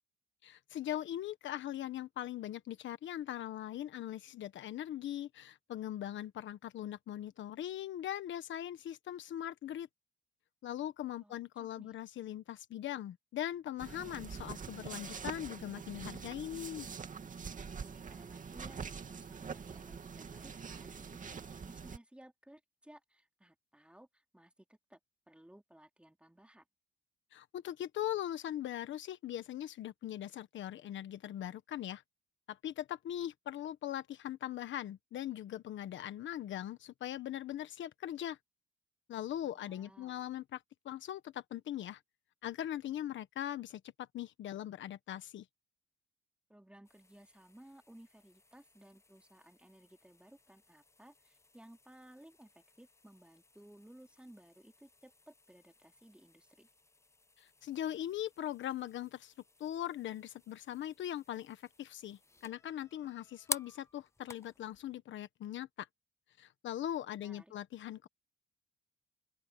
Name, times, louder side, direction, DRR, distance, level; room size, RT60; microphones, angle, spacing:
voice 1, 0.4-9.9 10.6-16.9 27.3-32.0 32.5-38.4 39.1-42.0 42.4-45.4 57.4-59.3 59.6-65.9 66.4-68.1, left 11 dB, 70° left, 1.3 m, -40 dB
voice 2, 11.2-11.9 17.8-18.8 19.0-25.0 25.3-26.6 39.4-40.1 46.5-56.7 67.1-67.5, right 1 dB, 5° right, 3.0 m, -59 dB
sound 1, 13.8-22.0, right 6 dB, 40° right, 2.4 m, -45 dB
sound 2, 46.8-65.0, left 3 dB, 15° left, 0.6 m, -51 dB
open air
cardioid pair, 90°, 20 cm